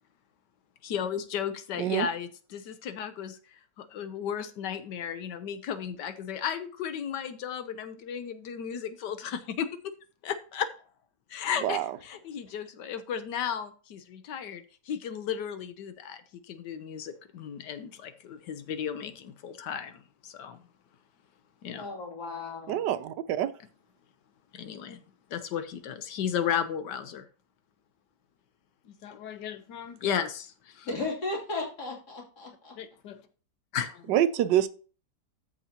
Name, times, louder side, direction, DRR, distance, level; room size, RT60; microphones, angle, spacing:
voice 1, 0.8-3.4 3.9-9.7 10.2-10.7 11.3-11.8 12.0-14.6 14.9-16.2 16.5-19.9 20.2-20.6 21.6-21.8 24.6-25.0 25.3-27.2 29.0-30.5 30.8-30.9 32.8-33.2 33.7-34.0, left 8 dB, 80° left, 10 dB, 1.4 m, -34 dB
voice 2, 1.8-2.1 11.6-12.0 22.7-23.5 34.1-34.7, right 11 dB, 85° right, 13 dB, 1.3 m, -26 dB
voice 3, 21.7-22.8 30.9-32.8, left 3 dB, 65° left, -2 dB, 3.4 m, -35 dB
13.5 x 5.6 x 2.9 m, 0.37 s
omnidirectional pair, 1.8 m